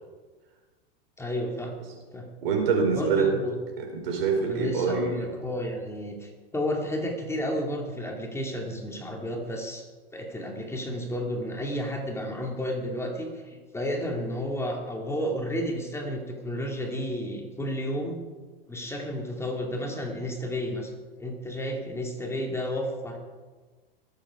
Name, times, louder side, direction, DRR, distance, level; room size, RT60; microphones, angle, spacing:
voice 1, 1.2-1.7 2.1-2.3 2.9-3.6 4.5-9.8 10.1-18.2 18.7-20.9 21.2-23.2, equal, 10° left, 1 dB, 2.3 m, -32 dB
voice 2, 2.4-3.3 3.8-5.2, right 5 dB, 70° right, 1 dB, 5.0 m, -25 dB
21.0 x 8.4 x 4.9 m, 1.3 s
hypercardioid pair, 110°, 30 cm